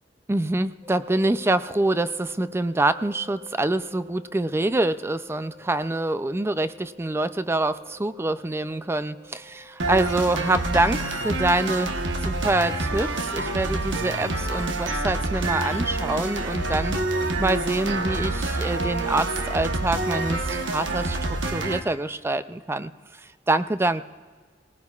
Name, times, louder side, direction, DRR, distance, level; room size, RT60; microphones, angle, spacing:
voice 1, 0.3-24.1, right 2 dB, 15° right, 13 dB, 0.3 m, -26 dB
sound 1, 0.8-19.2, left 2 dB, 50° right, 4.5 m, -51 dB
sound 2, 9.8-21.8, right 2 dB, 80° right, 1.1 m, -27 dB
19.5 x 19.5 x 2.4 m, 1.5 s
head